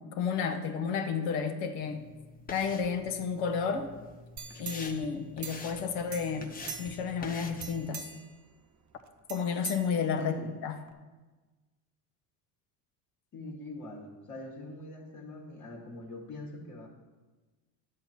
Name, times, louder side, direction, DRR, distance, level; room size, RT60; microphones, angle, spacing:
voice 1, 0.0-2.1 2.5-3.9 4.6-8.0 9.3-10.3 10.6-10.7, left 6 dB, 85° left, 8 dB, 1.1 m, -31 dB
sound 1, 1.8-7.9, left 3 dB, 20° left, 0.9 m, -47 dB
sound 2, 4.4-5.8 6.1-7.2 7.6-8.4 9.3-10.4 10.9-11.0, right 7 dB, 40° right, 0.8 m, -43 dB
voice 2, 10.2-10.6 13.3-16.9, left 1 dB, 40° left, -3 dB, 1.6 m, -43 dB
10.5 x 7.8 x 4.3 m, 1.3 s
supercardioid pair, 105°, 46 cm